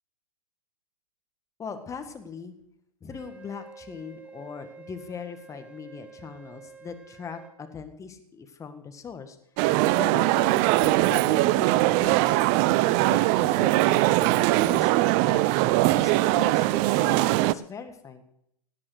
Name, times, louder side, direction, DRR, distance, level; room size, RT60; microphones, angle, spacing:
voice 1, 1.6-2.5 3.0-9.4 9.8-12.6 13.1-14.9 15.2-18.2, left 6 dB, 15° left, 8 dB, 1.8 m, -40 dB
Wind instrument woodwind instrument, 3.1-7.6, right 5 dB, 5° right, 1.6 m, -49 dB
sound 1, 9.6-17.5, right 17 dB, 35° right, 0.5 m, -21 dB
17.5 x 9.8 x 6.5 m, 0.74 s
hypercardioid pair, 115°, 19 cm